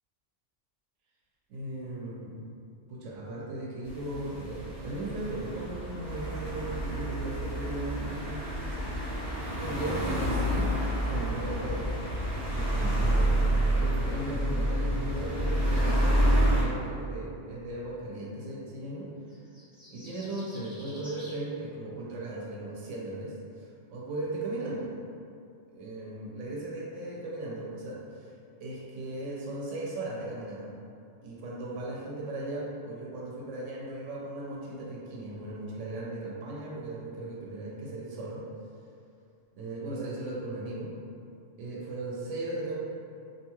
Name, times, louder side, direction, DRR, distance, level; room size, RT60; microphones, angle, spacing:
voice 1, 1.5-2.4 2.9-8.4 9.6-10.7 11.0-11.9 12.5-19.1 19.9-24.9 25.7-28.3 28.6-30.7 31.2-38.4 39.6-40.9 41.6-42.7, right 2 dB, 85° right, -4 dB, 0.9 m, -37 dB
sound 1, 3.8-16.6, right 1 dB, 25° right, 0.8 m, -28 dB
sound 2, 19.3-21.4, equal, 10° right, 0.3 m, -50 dB
2.7 x 2.3 x 2.9 m, 2.5 s
omnidirectional pair, 1.2 m